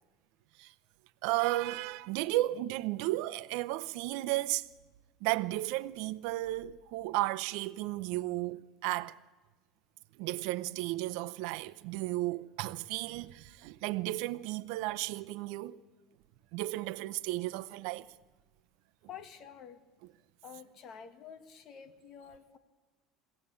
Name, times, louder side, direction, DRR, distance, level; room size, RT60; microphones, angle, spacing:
voice 1, 1.2-4.7 5.2-9.2 10.2-15.8 16.5-18.1, right 17 dB, 70° right, 0.7 m, -34 dB
voice 2, 19.1-19.8 20.4-22.6, left 8 dB, 35° left, 1.8 m, -49 dB
22.5 x 17.0 x 8.6 m
cardioid pair, 155°, 0 cm